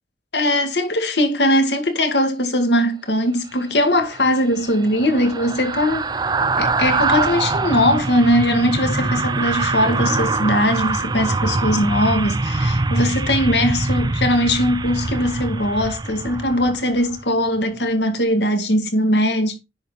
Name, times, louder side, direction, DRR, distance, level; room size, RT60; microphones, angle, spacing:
voice 1, 0.3-6.1 6.6-19.6, left 1 dB, 75° left, 2.1 m, -20 dB
sound 1, 3.9-17.2 17.6-17.8, right 3 dB, 25° right, 0.5 m, -23 dB
10.0 x 4.1 x 5.1 m
head